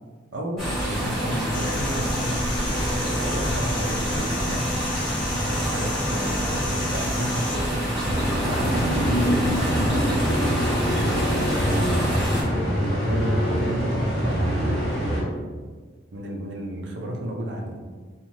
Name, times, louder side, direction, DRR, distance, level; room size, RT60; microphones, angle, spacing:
voice 1, 0.3-4.8 5.3-10.3 11.3-15.5 16.1-17.8, right 1 dB, 65° right, 0 dB, 0.4 m, -32 dB
sound 1, 0.6-12.4, equal, ahead, 1.3 m, -27 dB
sound 2, 1.5-7.6, left 3 dB, 25° left, 0.3 m, -35 dB
sound 3, 8.0-15.2, equal, 50° left, 1.2 m, -24 dB
3.0 x 2.3 x 2.6 m, 1.5 s
head